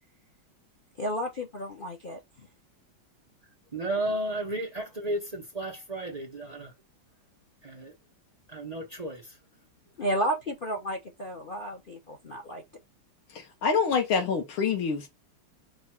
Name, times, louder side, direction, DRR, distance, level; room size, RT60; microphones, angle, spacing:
voice 1, 1.0-2.2 10.0-12.6, right 1 dB, 60° left, 0.5 m, -32 dB
voice 2, 3.7-6.7 7.6-7.9 8.5-9.4, right 1 dB, 70° right, 0.3 m, -33 dB
voice 3, 13.3-15.1, left 5 dB, 80° left, 1.8 m, -26 dB
5.2 x 2.3 x 4.3 m
omnidirectional pair, 2.2 m